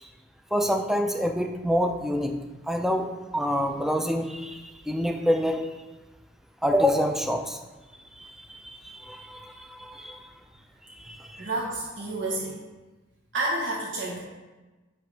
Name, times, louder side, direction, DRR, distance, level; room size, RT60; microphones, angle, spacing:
voice 1, 0.5-2.3 2.7-5.6 6.6-7.6 8.2-10.3 11.0-11.4, equal, ahead, 4 dB, 0.3 m, -27 dB
voice 2, 11.4-12.6 13.3-14.2, right 2 dB, 80° right, -4 dB, 1.1 m, -29 dB
10.0 x 3.4 x 3.3 m, 1.2 s
head